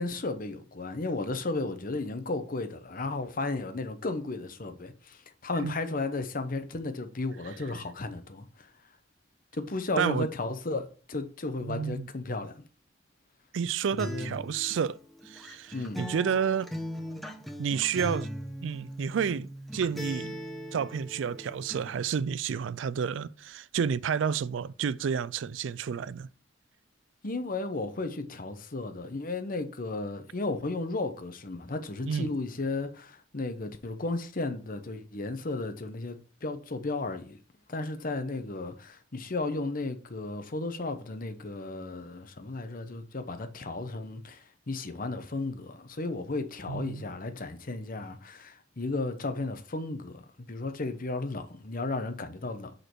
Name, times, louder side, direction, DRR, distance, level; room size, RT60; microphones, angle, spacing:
voice 1, 0.0-8.7 9.5-12.5 13.9-14.3 15.7-16.0 27.2-37.4 37.7-52.7, left 2 dB, 50° left, 1.0 m, -34 dB
voice 2, 10.0-10.3 11.6-12.1 13.5-15.0 15.2-16.7 17.6-18.3 18.6-20.4 20.7-26.3 32.1-32.4 46.7-47.1, right 7 dB, 85° right, 0.4 m, -30 dB
Acoustic guitar, 14.0-22.0, equal, ahead, 1.0 m, -39 dB
6.6 x 5.0 x 4.5 m
head